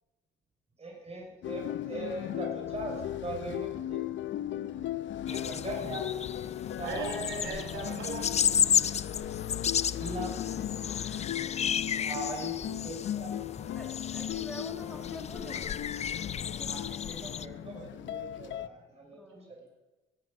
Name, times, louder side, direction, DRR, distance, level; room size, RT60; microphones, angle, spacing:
voice 1, 0.8-4.0 5.2-6.4 6.8-7.5 10.0-10.4 12.0-13.4 16.7-19.6, right 2 dB, 30° right, 0 dB, 5.8 m, -41 dB
sound 1, 1.4-18.7, left 12 dB, 70° left, 0.7 m, -37 dB
sound 2, 5.3-17.4, left 8 dB, 35° left, 0.4 m, -33 dB
voice 2, 6.8-8.3 11.9-12.2, right 3 dB, 80° right, 1 dB, 4.2 m, -37 dB
voice 3, 13.7-15.8 16.2-16.9 19.1-19.5, equal, ahead, 0 dB, 2.3 m, -46 dB
18.0 x 11.0 x 5.3 m, 1.1 s
cardioid pair, 90°, 20 cm